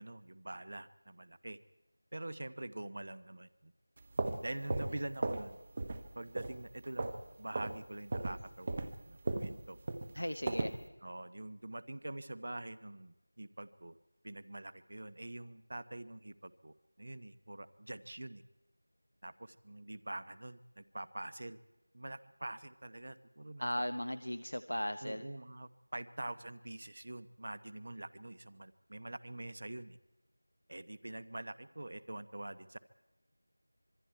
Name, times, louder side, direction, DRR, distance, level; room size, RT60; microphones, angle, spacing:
voice 1, 0.0-1.6 2.1-3.7 4.4-5.6 6.1-7.1 7.4-9.8 11.0-14.0 14.2-18.4 19.2-21.6 21.9-23.7 25.0-30.0 30.7-32.8, right 1 dB, 50° right, 15 dB, 1.0 m, -45 dB
sound 1, 4.0-5.5 5.8-6.1 6.4-7.2 7.5-7.8 8.1-10.8, right 2 dB, 25° right, 1.0 m, -36 dB
voice 2, 10.1-10.8 23.6-25.2, equal, 90° left, 10 dB, 0.9 m, -37 dB
26.0 x 22.0 x 4.6 m, 1.0 s
figure-of-eight pair, 175°, 0 cm